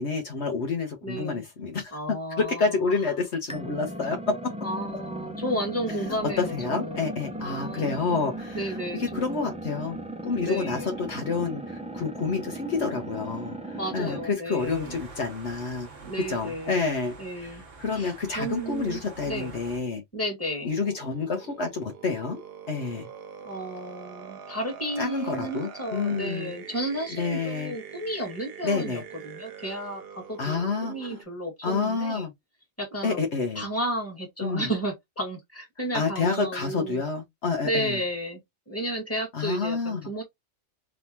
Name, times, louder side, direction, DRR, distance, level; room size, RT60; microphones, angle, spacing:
voice 1, 0.0-1.9 2.4-4.5 6.1-10.0 10.2-15.9 16.3-20.0 20.6-22.4 22.7-23.1 25.0-26.5 27.2-27.7 28.6-29.0 30.4-31.2 31.6-32.3 33.0-33.6 34.4-34.7 35.9-38.0 39.3-40.0, left 4 dB, 65° left, 1.3 m, -29 dB
voice 2, 1.0-1.4 1.9-2.7 4.6-7.1 7.4-8.3 8.5-9.5 10.4-11.0 13.8-15.0 16.0-16.9 17.2-17.6 17.9-19.0 19.3-19.5 20.1-20.7 23.5-32.3 32.8-33.3 33.6-37.0 37.6-38.4 38.7-40.2, right 1 dB, 10° left, 1.8 m, -33 dB
sound 1, 3.5-14.4, right 1 dB, 5° right, 0.7 m, -37 dB
sound 2, 14.6-19.8, right 4 dB, 85° right, 1.5 m, -46 dB
sound 3, 20.6-31.2, right 7 dB, 60° right, 0.9 m, -44 dB
3.7 x 3.6 x 2.8 m
omnidirectional pair, 1.2 m